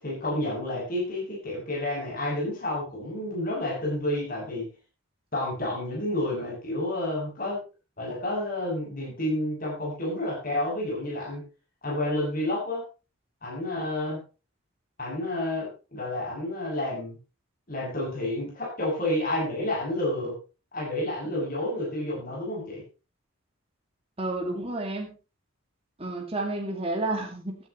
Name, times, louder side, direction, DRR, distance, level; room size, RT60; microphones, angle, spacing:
voice 1, 0.0-4.7 5.3-7.6 8.0-11.4 11.8-12.8 13.4-14.2 15.0-17.2 17.7-20.3 20.7-22.8, left 1 dB, 40° left, -3 dB, 7.5 m, -30 dB
voice 2, 24.2-25.1 26.0-27.6, right 2 dB, 25° right, 1 dB, 2.3 m, -30 dB
15.0 x 13.0 x 3.1 m, 0.32 s
head